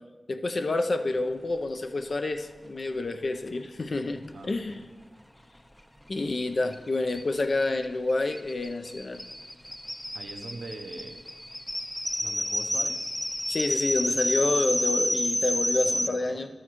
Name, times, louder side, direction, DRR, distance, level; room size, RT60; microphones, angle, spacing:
voice 1, 0.3-4.8 6.1-9.2 13.5-16.5, left 2 dB, 65° left, 7 dB, 0.5 m, -28 dB
voice 2, 4.3-4.9 10.1-11.2 12.2-13.1 15.8-16.5, right 3 dB, 90° right, 6 dB, 0.6 m, -42 dB
sound 1, 6.4-6.5 6.7-6.8 7.1-16.1, equal, 10° left, 0.4 m, -30 dB
11.5 x 6.4 x 3.0 m, 1.4 s
cardioid pair, 45°, 0 cm